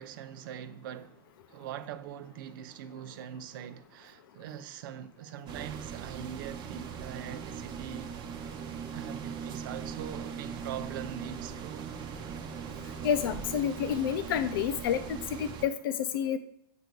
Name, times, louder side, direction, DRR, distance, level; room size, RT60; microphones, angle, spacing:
voice 1, 0.0-8.2 8.9-11.9, right 10 dB, 70° right, 0.6 m, -42 dB
sound 1, 5.5-15.7, right 7 dB, 40° right, 0.9 m, -40 dB
voice 2, 13.0-16.4, left 8 dB, 80° left, 0.6 m, -29 dB
8.0 x 2.7 x 4.6 m
supercardioid pair, 125°, 12 cm